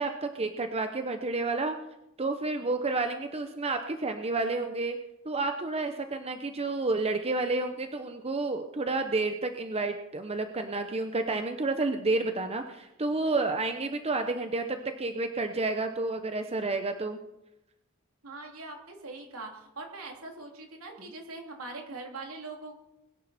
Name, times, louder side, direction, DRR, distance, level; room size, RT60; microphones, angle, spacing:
voice 1, 0.0-1.8 2.2-5.0 5.2-17.2 21.0-21.1, right 3 dB, 30° right, 7 dB, 0.8 m, -30 dB
voice 2, 18.2-22.8, right 3 dB, 75° right, 2 dB, 3.0 m, -42 dB
21.0 x 11.0 x 4.2 m, 0.92 s
head